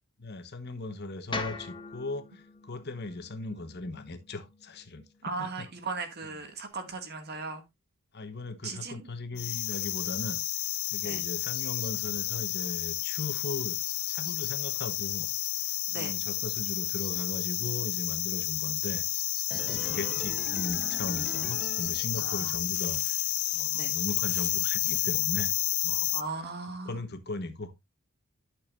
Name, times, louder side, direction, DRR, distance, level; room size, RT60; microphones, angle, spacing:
voice 1, 0.2-5.1 5.4-5.7 8.1-10.4 10.9-13.8 14.1-15.3 15.9-19.1 19.5-23.2 23.5-25.5 25.8-26.2 26.9-27.7, left 2 dB, 50° left, 1.2 m, -38 dB
sound 1, 1.3-5.5, left 3 dB, 20° left, 1.1 m, -42 dB
voice 2, 5.2-7.6 8.6-9.0 11.0-11.2 15.9-16.1 19.8-20.4 22.1-22.9 23.7-23.9 26.1-27.0, right 3 dB, 50° right, 2.0 m, -38 dB
sound 2, 9.4-26.2, left 18 dB, 85° left, 0.5 m, -31 dB
sound 3, 19.5-22.6 22.9-23.0, equal, ahead, 0.4 m, -44 dB
12.0 x 6.4 x 2.5 m
head